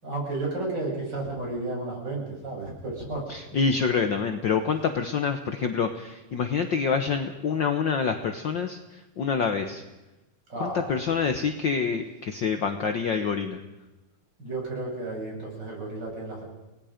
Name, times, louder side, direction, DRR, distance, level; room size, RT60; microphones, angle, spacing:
voice 1, 0.0-3.3 10.5-11.0 14.4-16.4, right 2 dB, 30° right, -2 dB, 8.0 m, -32 dB
voice 2, 3.3-8.8 9.2-9.8 10.6-13.6, left 6 dB, 70° left, 7 dB, 1.0 m, -26 dB
30.0 x 19.5 x 5.1 m, 1.0 s
omnidirectional pair, 3.6 m